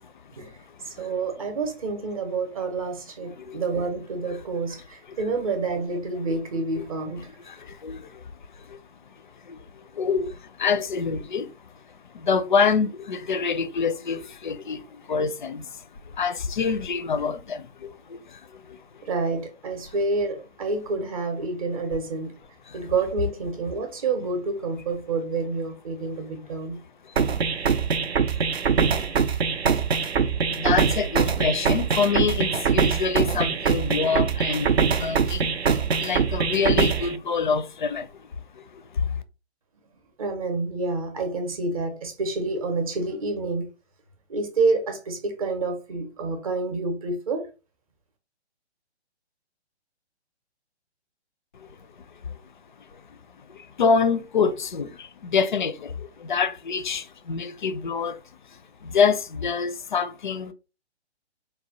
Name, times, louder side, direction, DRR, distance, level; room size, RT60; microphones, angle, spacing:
voice 1, 0.8-7.3 19.0-22.3 22.7-26.8 40.2-43.7 44.3-47.5, right 3 dB, 30° right, 0.7 m, -28 dB
voice 2, 3.2-3.6 5.1-5.2 6.8-6.9 7.3-8.2 8.6-8.8 9.4-11.5 12.1-19.0 22.7-22.8 27.0-27.1 28.4-28.5 28.9-29.5 29.9-30.0 30.4-35.5 35.9-38.3 38.5-39.2 51.5-51.7 52.2-52.3 52.9-53.0 53.5-58.2 58.8-60.5, left 5 dB, 45° left, 0.4 m, -27 dB
sound 1, 27.2-37.2, right 6 dB, 65° right, 0.5 m, -23 dB
4.2 x 2.1 x 2.7 m
figure-of-eight pair, 135°, 34 cm